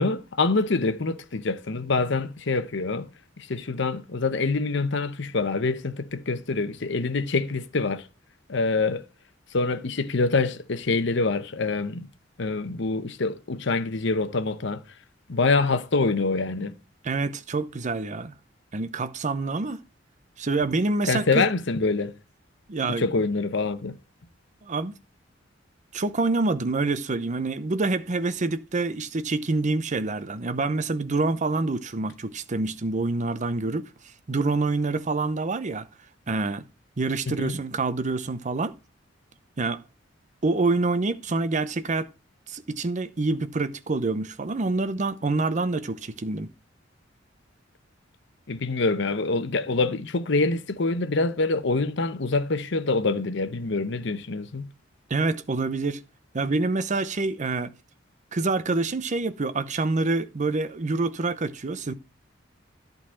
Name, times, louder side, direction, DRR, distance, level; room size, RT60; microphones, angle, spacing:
voice 1, 0.0-3.1 3.4-8.0 8.5-9.0 9.5-12.1 12.4-14.8 15.3-16.7 21.1-22.1 23.0-23.9 37.3-37.5 48.5-54.7, left 3 dB, 70° left, 0.9 m, -25 dB
voice 2, 17.0-18.3 18.7-19.8 20.4-21.4 22.7-23.2 24.6-25.0 25.9-33.9 34.3-35.9 36.3-36.6 37.0-38.8 39.6-39.8 40.4-42.1 42.5-46.5 55.1-56.0 56.3-57.7 58.3-61.9, right 3 dB, 40° right, 0.7 m, -26 dB
11.0 x 4.0 x 7.5 m
head